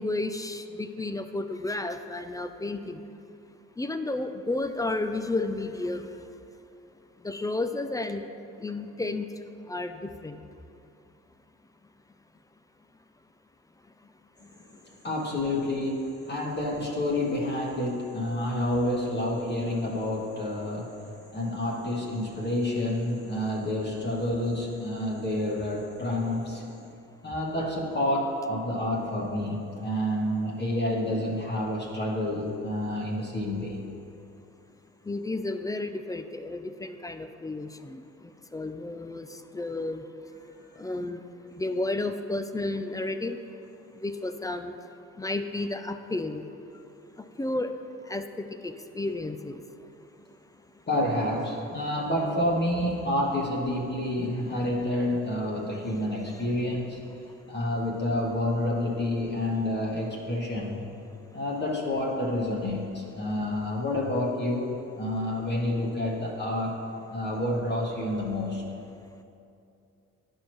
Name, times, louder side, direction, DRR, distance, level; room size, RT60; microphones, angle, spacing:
voice 1, 0.0-3.0 3.8-6.1 7.2-8.3 8.6-9.3 9.7-10.4 35.1-38.0 38.5-39.3 39.5-40.0 40.8-41.2 41.6-43.4 44.0-44.7 45.2-46.4 47.4-47.7 48.1-49.6, left 2 dB, 10° left, 8 dB, 0.3 m, -32 dB
voice 2, 14.8-26.8 27.2-33.9 50.9-57.0 57.5-60.8 61.3-66.8 67.1-68.6, left 1 dB, 30° left, -3 dB, 1.4 m, -29 dB
11.0 x 4.6 x 3.1 m, 2.7 s
hypercardioid pair, 60°, 35 cm